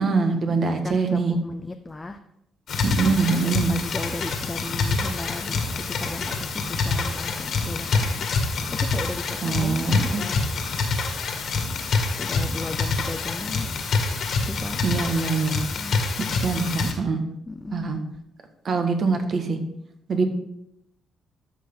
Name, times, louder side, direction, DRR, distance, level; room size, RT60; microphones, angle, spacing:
voice 1, 0.0-1.3 2.8-3.7 9.4-10.2 14.8-15.6 16.2-17.2 17.7-18.0 18.6-19.6 20.1-20.3, right 4 dB, 50° right, 6 dB, 1.5 m, -23 dB
voice 2, 0.8-2.2 3.4-10.4 12.2-13.7 14.4-14.8 15.7-16.0 17.5-18.0, left 2 dB, 20° left, 6 dB, 0.5 m, -36 dB
sound 1, 2.7-16.9, left 4 dB, 60° left, 1.7 m, -26 dB
13.0 x 6.1 x 3.8 m, 0.80 s
cardioid pair, 90°, 0 cm